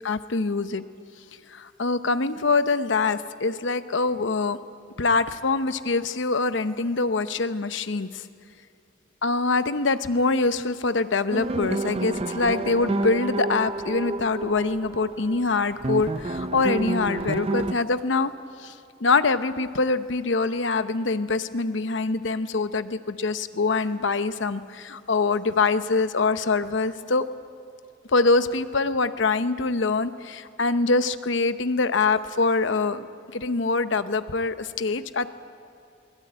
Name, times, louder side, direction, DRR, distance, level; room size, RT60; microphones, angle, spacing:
voice 1, 0.0-0.8 1.5-4.6 5.0-8.2 9.2-18.3 18.6-18.7 19.0-27.2 28.1-33.1 33.3-35.3, left 3 dB, 70° left, 11 dB, 0.8 m, -24 dB
sound 1, 11.3-17.7, right 2 dB, 30° right, 0.6 m, -29 dB
22.0 x 20.5 x 8.8 m, 2.4 s
head